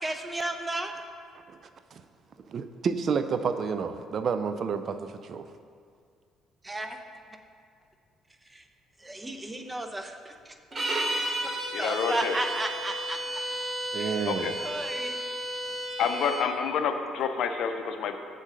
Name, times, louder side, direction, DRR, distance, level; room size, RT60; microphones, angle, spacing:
voice 1, 0.0-0.9 6.6-7.0 9.0-10.3 11.8-13.2 14.0-14.1 14.6-15.1, right 1 dB, 20° right, 5 dB, 0.7 m, -33 dB
voice 2, 1.5-2.0 2.5-5.5 13.9-14.6, right 6 dB, 55° right, 9 dB, 0.4 m, -30 dB
sound 1, 10.7-16.5, right 1 dB, 35° right, 1.1 m, -33 dB
voice 3, 11.7-12.4 14.3-14.5 16.0-18.2, left 6 dB, 65° left, 7 dB, 0.5 m, -28 dB
7.2 x 3.8 x 6.4 m, 2.2 s
hypercardioid pair, 50°, 0 cm